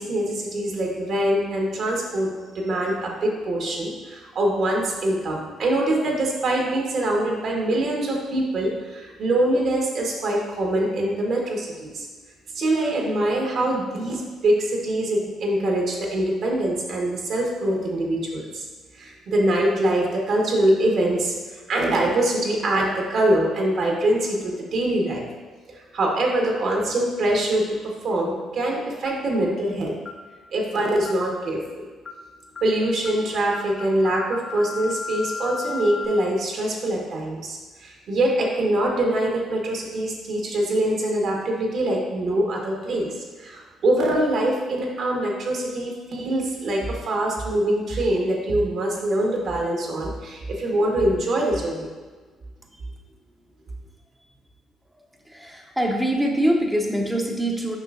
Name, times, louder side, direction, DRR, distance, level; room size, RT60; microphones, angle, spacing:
voice 1, 0.0-12.1 12.5-18.6 18.9-25.3 25.7-30.0 30.5-31.9 32.6-51.9, right 1 dB, 65° right, -1 dB, 1.3 m, -24 dB
sound 1, 29.1-29.3 30.1-30.3 31.1-31.3 32.1-32.3 32.6-32.8 33.1-33.3 33.6-36.1, left 4 dB, 40° left, 0.5 m, -35 dB
voice 2, 55.3-57.8, right 1 dB, 5° right, 0 dB, 0.8 m, -23 dB
6.9 x 5.5 x 2.5 m, 1.4 s
hypercardioid pair, 50°, 0 cm